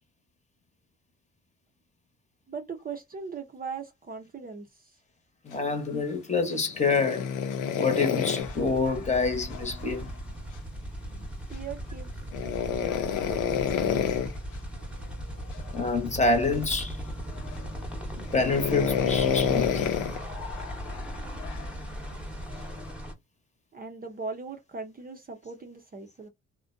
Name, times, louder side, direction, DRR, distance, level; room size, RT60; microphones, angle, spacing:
voice 1, 2.5-4.9 11.5-12.1 12.4-14.2 23.7-26.3, right 5 dB, 30° right, 0.6 m, -40 dB
voice 2, 5.4-7.3 7.8-10.1 15.7-17.0 18.3-19.9, left 3 dB, 25° left, 0.9 m, -27 dB
sound 1, 6.7-10.0 12.3-14.4 15.5-16.0 16.5-16.6 17.3-17.8 18.3-21.7 22.6-22.9, left 8 dB, 85° left, 0.7 m, -29 dB
sound 2, 8.4-23.1, equal, 5° right, 0.9 m, -38 dB
2.5 x 2.1 x 2.5 m
cardioid pair, 90°, 30 cm